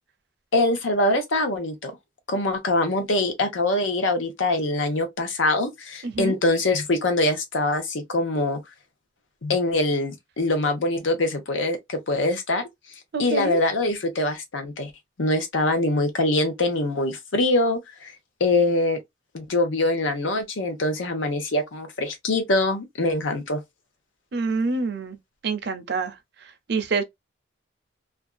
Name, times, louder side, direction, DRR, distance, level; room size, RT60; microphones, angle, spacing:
voice 1, 0.5-1.9 2.3-8.6 9.4-12.6 13.2-14.9 15.2-18.1 18.4-19.0 19.3-23.6, left 2 dB, 75° left, 0.8 m, -23 dB
voice 2, 6.0-6.4 13.1-13.6 24.3-25.2 25.4-27.0, right 4 dB, 55° right, 0.5 m, -27 dB
2.5 x 2.3 x 2.2 m
head